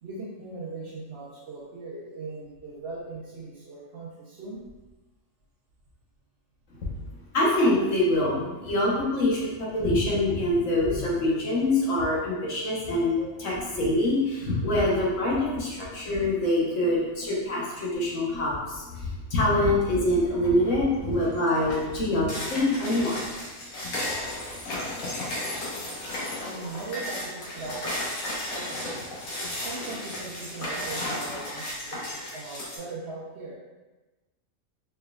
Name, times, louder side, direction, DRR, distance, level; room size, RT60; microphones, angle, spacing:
voice 1, 0.0-4.7 26.4-28.1 28.5-29.1 29.6-33.6, right 3 dB, 55° right, -5 dB, 0.9 m, -39 dB
voice 2, 7.3-23.2, left 1 dB, 65° left, -5 dB, 1.2 m, -25 dB
sound 1, 20.3-20.7 21.1-32.8, left 1 dB, 80° left, 1.4 m, -34 dB
4.3 x 3.3 x 2.3 m, 1.1 s
omnidirectional pair, 1.5 m